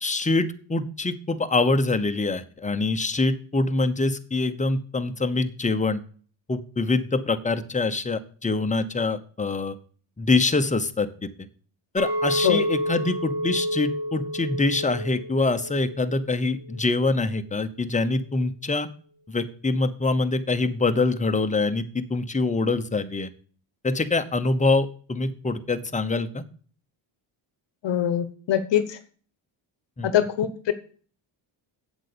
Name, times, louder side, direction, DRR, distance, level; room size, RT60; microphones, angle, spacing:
voice 1, 0.0-6.0 6.5-9.8 10.2-11.3 11.9-18.9 19.3-23.3 23.8-26.4 30.0-30.1, left 3 dB, 15° left, 9 dB, 0.9 m, -25 dB
Chink clink, 12.0-16.3 16.6-17.1, equal, 80° right, 6.5 m, -29 dB
voice 2, 27.8-29.0 30.0-30.7, left 10 dB, 60° left, 12 dB, 1.0 m, -23 dB
8.1 x 8.1 x 6.8 m, 0.44 s
cardioid pair, 110°, 48 cm